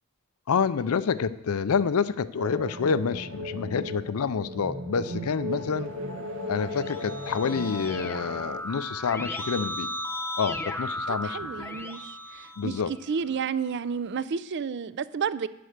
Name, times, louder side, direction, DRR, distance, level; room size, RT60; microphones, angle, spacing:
voice 1, 0.5-5.9 6.5-9.9 10.4-11.7 12.6-12.9, left 6 dB, 75° left, 16 dB, 0.5 m, -28 dB
sound 1, 2.4-8.6, left 1 dB, 75° right, 1.6 m, -36 dB
Keyboard (musical), 6.6-13.2, left 1 dB, 10° left, 0.8 m, -36 dB
voice 2, 11.1-15.5, right 6 dB, 55° right, 16 dB, 0.4 m, -31 dB
9.4 x 7.7 x 6.5 m, 1.0 s
head